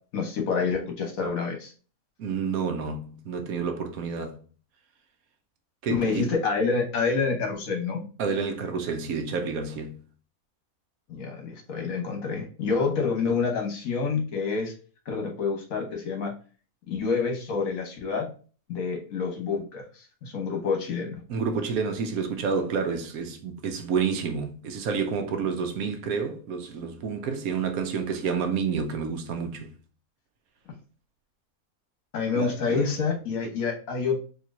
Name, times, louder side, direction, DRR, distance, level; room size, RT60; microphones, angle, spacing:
voice 1, 0.1-1.7 5.9-8.0 11.1-14.7 15.1-16.3 16.9-18.3 18.7-21.2 32.1-34.2, left 5 dB, 65° left, 1.4 m, -28 dB
voice 2, 2.2-4.5 5.8-6.3 8.2-10.0 21.3-29.7 32.3-32.9, right 5 dB, 75° right, 1.1 m, -29 dB
4.3 x 3.0 x 2.5 m
omnidirectional pair, 1.6 m